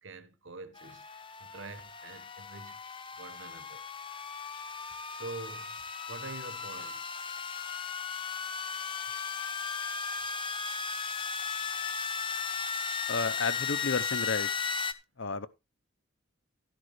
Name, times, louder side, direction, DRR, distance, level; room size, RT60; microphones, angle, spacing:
voice 1, 0.0-2.8 3.2-4.3 5.1-5.8 6.1-7.4, right 3 dB, 65° right, 1.2 m, -46 dB
sound 1, 0.7-14.9, left 6 dB, 25° left, 0.7 m, -36 dB
voice 2, 13.1-14.5 15.2-15.5, left 4 dB, 65° left, 0.8 m, -31 dB
12.5 x 10.5 x 3.2 m
head